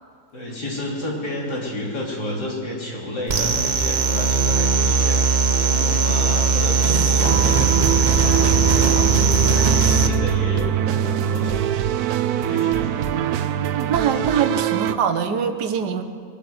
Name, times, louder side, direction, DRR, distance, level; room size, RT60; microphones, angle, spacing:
voice 1, 0.3-7.7 7.9-9.1 9.5-11.7 12.3-13.1, left 1 dB, 75° left, -4 dB, 4.0 m, -31 dB
sound 1, 3.3-10.1, right 4 dB, 40° right, 0.7 m, -19 dB
sound 2, 7.2-15.0, right 10 dB, 70° right, 1.1 m, -23 dB
voice 2, 13.9-16.0, right 7 dB, 85° right, 9 dB, 1.5 m, -23 dB
22.0 x 8.4 x 7.9 m, 2.3 s
omnidirectional pair, 1.8 m